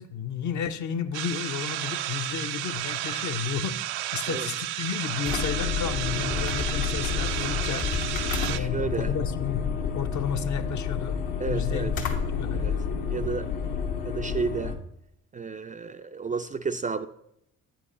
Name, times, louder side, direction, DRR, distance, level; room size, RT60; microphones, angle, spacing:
voice 1, 0.0-3.8 4.1-7.9 8.4-9.6 9.9-11.1 11.5-11.9 12.2-12.6, left 7 dB, 50° left, 8 dB, 0.7 m, -32 dB
sound 1, 1.1-8.6, right 13 dB, 80° right, 0.5 m, -32 dB
sound 2, 5.2-14.7, left 6 dB, 75° left, 1.2 m, -30 dB
voice 2, 8.5-9.1 11.4-11.9 12.5-12.7 13.0-13.5 14.0-14.8 15.3-17.1, right 5 dB, 25° right, 8 dB, 0.3 m, -31 dB
8.3 x 4.6 x 5.0 m, 0.76 s
hypercardioid pair, 60°, 37 cm